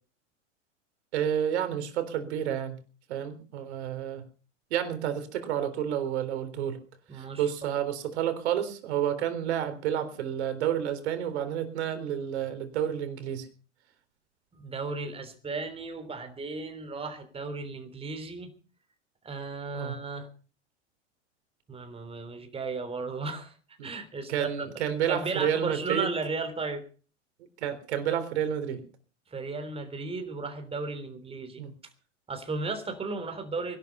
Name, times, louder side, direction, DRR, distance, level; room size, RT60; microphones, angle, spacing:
voice 1, 1.1-2.8 3.1-4.2 4.7-6.8 7.1-13.5 19.7-20.0 23.8-23.9 24.3-26.1 27.6-28.8 31.6-31.7, right 9 dB, 65° right, 10 dB, 3.8 m, -30 dB
voice 2, 7.1-7.5 14.6-18.5 19.2-20.3 21.7-23.5 23.8-24.5 25.1-26.8 29.3-31.6 32.3-33.8, right 3 dB, 15° right, 8 dB, 3.5 m, -35 dB
21.5 x 12.0 x 5.5 m, 0.40 s
hypercardioid pair, 100°, 36 cm